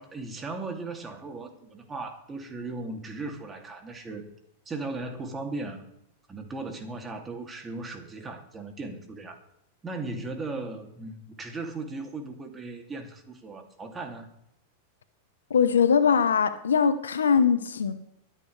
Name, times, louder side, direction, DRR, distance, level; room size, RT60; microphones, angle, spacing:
voice 1, 0.0-4.2 4.7-5.8 6.3-9.4 9.8-14.3, right 3 dB, 20° right, 2.7 m, -37 dB
voice 2, 15.5-17.9, left 6 dB, 85° left, 1.0 m, -21 dB
24.5 x 9.0 x 3.4 m
hypercardioid pair, 105°, 0 cm